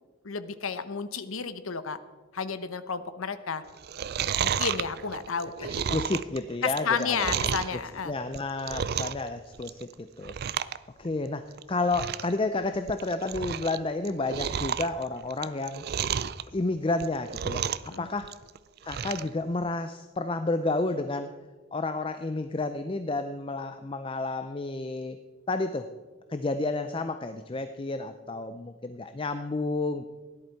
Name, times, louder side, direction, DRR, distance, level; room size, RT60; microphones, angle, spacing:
voice 1, 0.2-2.0 2.3-3.6 4.4-6.0 6.6-8.1 17.9-18.1, left 5 dB, 80° left, 12 dB, 0.9 m, -32 dB
Chewing mastication, 3.8-7.8 8.2-9.3 9.5-9.9 10.2-10.8 11.0-11.1 11.6-11.7 11.9-12.3 12.7-13.8 14.0-16.4 16.9-17.9 18.2-19.3 19.7-19.8, right 8 dB, 50° right, 0.4 m, -31 dB
voice 2, 5.7-7.4 8.1-10.3 11.0-15.8 16.5-18.3 18.8-21.3 21.7-25.2 25.5-25.9 26.3-30.0, left 2 dB, 25° left, 9 dB, 0.4 m, -31 dB
17.0 x 11.0 x 4.6 m, 1.3 s
head